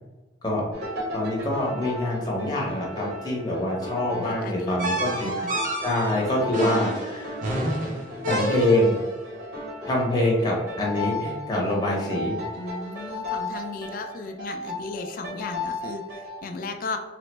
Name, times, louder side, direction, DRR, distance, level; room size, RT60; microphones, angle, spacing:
sound 1, 0.7-16.4, left 1 dB, 75° right, 0.9 m, -35 dB
voice 1, 1.1-5.3 5.8-7.4 8.3-9.0 9.8-12.4, left 1 dB, 20° left, -3 dB, 0.7 m, -25 dB
voice 2, 4.2-4.8 5.1-5.5 12.6-17.0, left 3 dB, 50° left, 5 dB, 0.3 m, -35 dB
sound 2, 4.8-9.1, right 1 dB, 50° right, 0.6 m, -29 dB
3.2 x 2.0 x 3.2 m, 1.2 s
head